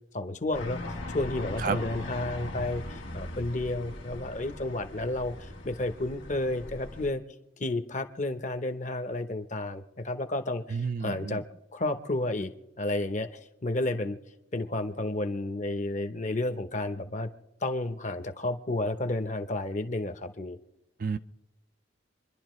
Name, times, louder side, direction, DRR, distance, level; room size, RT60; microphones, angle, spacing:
voice 1, 0.1-7.2 7.6-11.4 11.7-12.5 12.8-14.2 14.5-17.3 17.6-20.6, left 2 dB, 40° left, 0.8 m, -31 dB
sound 1, 0.5-7.1, left 1 dB, 90° left, 1.7 m, -39 dB
voice 2, 10.7-11.4 21.0-21.2, right 5 dB, 45° right, 0.4 m, -30 dB
27.5 x 11.0 x 3.1 m
head